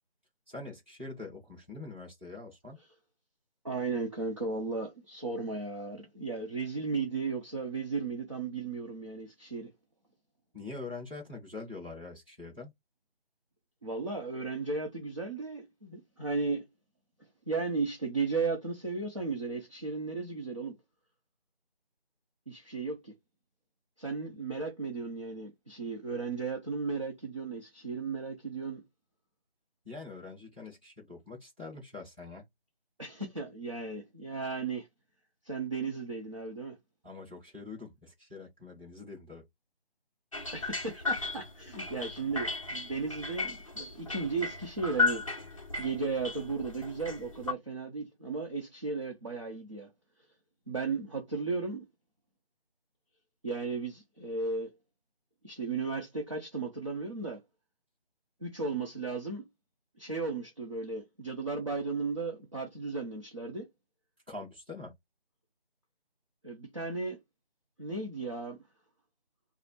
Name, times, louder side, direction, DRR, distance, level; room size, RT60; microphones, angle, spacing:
voice 1, 0.5-2.8 10.5-12.7 29.8-32.4 37.0-39.4 64.3-64.9, left 3 dB, 10° right, 1.3 m, -44 dB
voice 2, 3.6-9.7 13.8-16.7 17.5-20.8 22.5-23.1 24.0-28.8 33.0-34.9 35.4-36.8 40.5-45.2 45.8-49.9 50.7-51.8 53.4-54.8 55.4-57.4 58.4-59.4 60.0-63.7 66.4-67.2 67.8-68.6, right 4 dB, 30° right, 0.7 m, -35 dB
sound 1, 40.3-47.5, left 3 dB, 35° left, 0.6 m, -35 dB
4.7 x 2.0 x 3.1 m
figure-of-eight pair, 165°, 31 cm